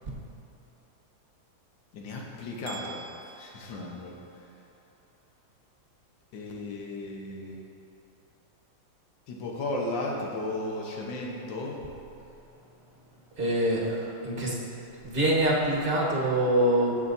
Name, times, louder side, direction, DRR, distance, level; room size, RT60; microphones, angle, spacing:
voice 1, 1.9-3.0 3.3-4.2 6.3-7.6 9.3-11.8, left 2 dB, 70° left, -1 dB, 1.7 m, -35 dB
sound 1, 2.7-4.6, right 6 dB, 75° right, 1.5 m, -46 dB
voice 2, 13.4-14.6 15.0-17.0, right 1 dB, 30° right, -5 dB, 1.5 m, -25 dB
17.0 x 5.7 x 2.7 m, 3.0 s
omnidirectional pair, 2.2 m